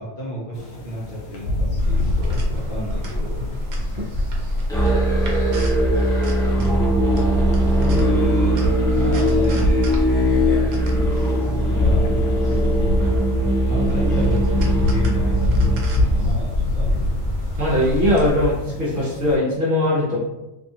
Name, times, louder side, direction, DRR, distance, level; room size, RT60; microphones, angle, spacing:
voice 1, 0.0-3.5 6.5-7.1 7.6-8.6 8.9-10.9 11.4-12.0 12.4-17.4, left 1 dB, 50° left, -5 dB, 0.8 m, -31 dB
sound 1, 0.5-19.4, left 2 dB, 85° left, 1.0 m, -27 dB
sound 2, 1.8-18.3, left 1 dB, 80° right, 1.0 m, -27 dB
Musical instrument, 4.7-16.3, right 1 dB, 5° left, 0.4 m, -20 dB
voice 2, 17.6-20.2, left 1 dB, 55° right, -5 dB, 0.9 m, -20 dB
2.6 x 2.3 x 2.7 m, 0.99 s
omnidirectional pair, 1.3 m